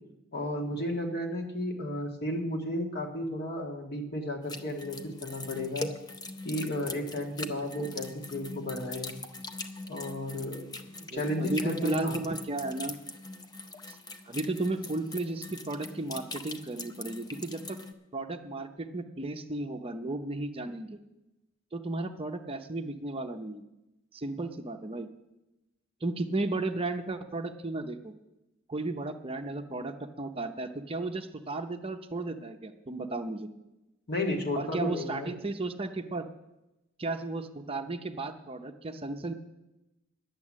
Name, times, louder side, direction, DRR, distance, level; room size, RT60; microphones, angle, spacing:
voice 1, 0.3-5.9 6.4-9.1 9.9-12.3 34.1-35.3, left 1 dB, 50° left, 2 dB, 1.7 m, -33 dB
sound 1, 4.5-17.9, left 2 dB, 20° left, 0.6 m, -42 dB
voice 2, 11.1-13.0 13.9-14.0 14.3-17.8 18.1-21.0 21.7-23.6 24.1-25.1 26.0-28.1 28.7-33.5 34.5-36.2 37.0-39.3, right 2 dB, 25° right, 5 dB, 0.6 m, -34 dB
10.5 x 8.8 x 7.3 m, 0.97 s
head